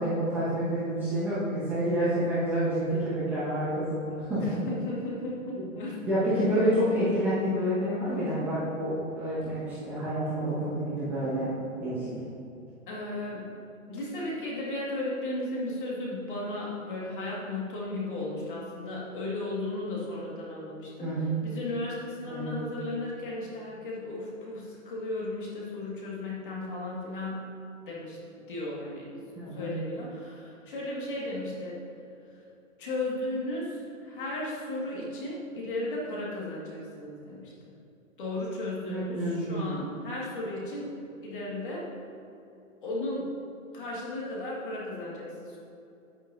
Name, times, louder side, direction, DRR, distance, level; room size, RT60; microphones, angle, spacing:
voice 1, 0.0-4.6 5.6-5.7 6.0-11.5 11.8-12.1 21.0-21.3 22.3-22.6 29.3-29.7 38.9-39.8, right 1 dB, 5° right, -14 dB, 1.4 m, -28 dB
voice 2, 4.4-6.0 12.9-13.5 13.9-27.5 27.9-29.1 29.5-31.8 32.8-33.8 34.0-37.5 38.2-41.0 41.2-41.8 42.8-43.3 43.7-45.6, left 2 dB, 40° left, -5 dB, 2.1 m, -35 dB
9.9 x 9.5 x 2.7 m, 2.7 s
hypercardioid pair, 175°, 41 cm